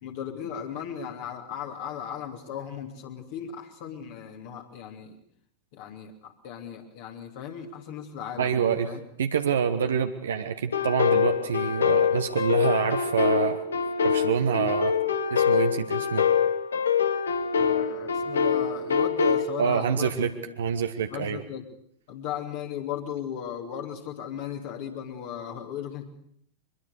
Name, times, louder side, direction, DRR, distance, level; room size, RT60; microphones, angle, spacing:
voice 1, 0.0-5.2 5.7-9.0 17.6-20.5 21.1-21.7 22.1-26.0, left 9 dB, 50° left, 2 dB, 2.8 m, -37 dB
voice 2, 8.4-8.9 9.2-13.6 14.0-15.0 15.3-16.2 19.6-21.4, right 7 dB, 65° right, 6 dB, 1.2 m, -26 dB
sound 1, 10.7-19.4, left 7 dB, 70° left, 1.4 m, -24 dB
23.5 x 22.0 x 6.7 m, 0.67 s
figure-of-eight pair, 90°, 0 cm